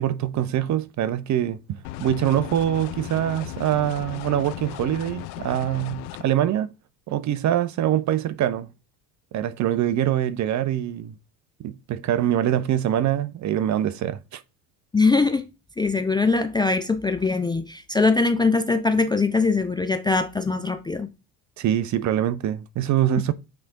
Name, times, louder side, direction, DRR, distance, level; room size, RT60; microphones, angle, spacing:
voice 1, 0.0-1.6 2.0-6.7 7.1-8.7 9.3-11.1 11.6-14.4 21.6-23.3, right 11 dB, 35° right, 0.6 m, -24 dB
sound 1, 1.8-6.2, left 14 dB, 65° left, 0.8 m, -36 dB
voice 2, 14.9-15.5 15.8-21.1, left 3 dB, 10° left, 0.4 m, -22 dB
8.3 x 3.4 x 3.7 m
hypercardioid pair, 70°, 47 cm